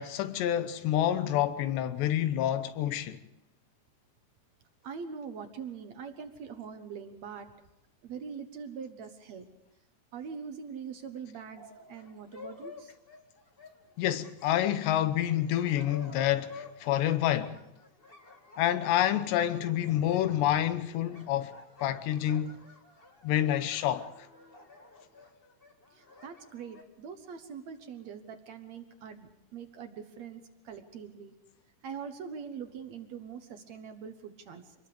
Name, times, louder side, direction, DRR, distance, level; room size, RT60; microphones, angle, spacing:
voice 1, 0.0-3.2 14.0-17.6 18.6-21.5 21.8-22.6 23.2-24.3, left 12 dB, 85° left, 3.2 m, -28 dB
voice 2, 4.8-7.5 8.0-9.5 10.1-12.9 25.9-31.4 31.8-34.7, right 6 dB, 65° right, 1.8 m, -43 dB
sound 1, 11.6-26.8, left 3 dB, 25° left, 1.3 m, -51 dB
26.5 x 21.0 x 5.1 m
omnidirectional pair, 4.8 m